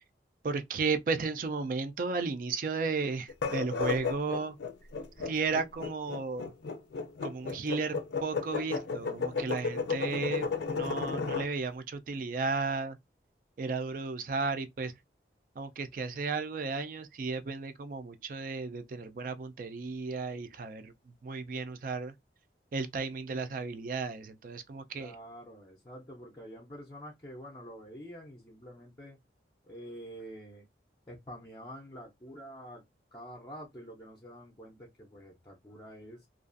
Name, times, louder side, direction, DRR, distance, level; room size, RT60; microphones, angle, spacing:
voice 1, 0.4-4.6 5.2-6.5 7.2-13.0 13.6-14.9 15.6-20.9 21.2-22.1 22.7-25.2, right 4 dB, 50° right, 0.4 m, -34 dB
sound 1, 3.3-11.5, left 5 dB, 80° left, 0.4 m, -33 dB
voice 2, 24.9-29.2 29.6-30.6 31.1-32.8 33.1-36.3, equal, 25° left, 0.5 m, -47 dB
2.4 x 2.3 x 2.4 m
head